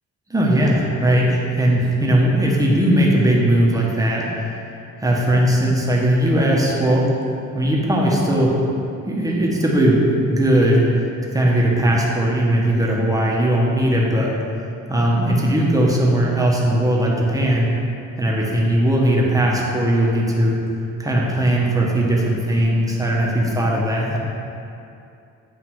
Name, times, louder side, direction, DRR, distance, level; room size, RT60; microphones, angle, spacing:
voice 1, 0.3-4.5 5.0-7.1 7.5-8.6 9.1-10.0 10.3-10.9 11.3-14.3 14.9-17.7 18.2-20.6 21.0-24.2, right 1 dB, 10° right, -3 dB, 1.1 m, -18 dB
8.3 x 2.8 x 4.6 m, 2.6 s
cardioid pair, 90°, 30 cm